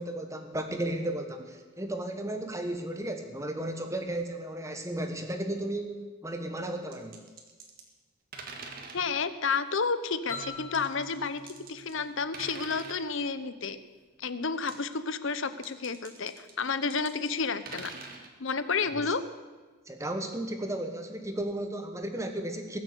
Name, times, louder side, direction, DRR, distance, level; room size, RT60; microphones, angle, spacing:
voice 1, 0.0-7.2 19.9-22.8, right 1 dB, 15° right, 5 dB, 1.3 m, -34 dB
sound 1, 6.9-7.9 8.3-9.1 10.7-12.0 12.3-13.0 14.5-14.9 15.5-18.3, right 4 dB, 40° right, 1.8 m, -45 dB
voice 2, 8.9-11.4 11.7-13.8 14.2-17.9 18.4-19.2, left 5 dB, 55° left, 12 dB, 0.8 m, -31 dB
sound 2, 10.3-13.0, left 3 dB, 15° left, 5.5 m, -44 dB
22.0 x 7.5 x 6.8 m, 1.3 s
head